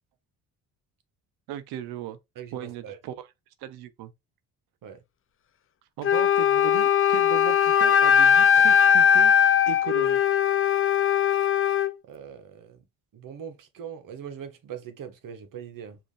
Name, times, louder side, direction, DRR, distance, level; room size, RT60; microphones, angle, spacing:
voice 1, 1.5-2.2 2.5-3.3 3.6-4.1 6.0-9.3 9.7-10.2 11.2-11.3, right 11 dB, 85° right, 0.9 m, -37 dB
voice 2, 2.3-3.0 4.8-5.0 12.1-12.8 13.1-16.0, right 8 dB, 60° right, 1.3 m, -41 dB
Wind instrument woodwind instrument, 6.0-11.9, left 8 dB, 35° left, 0.6 m, -20 dB
5.2 x 2.9 x 3.2 m
cardioid pair, 85°, 38 cm